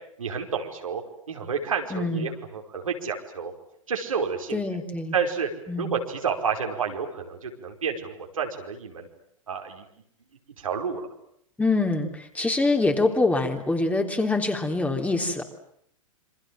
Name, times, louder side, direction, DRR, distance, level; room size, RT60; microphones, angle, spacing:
voice 1, 0.2-1.0 1.3-3.5 3.9-4.6 5.1-5.5 5.8-9.1 9.5-9.8 10.6-11.1, right 6 dB, 75° right, 3 dB, 5.0 m, -30 dB
voice 2, 1.9-2.3 4.5-5.1 5.7-5.9 11.6-15.4, left 2 dB, 10° left, 4 dB, 3.7 m, -25 dB
28.0 x 25.5 x 7.7 m, 0.70 s
figure-of-eight pair, 100°, 17 cm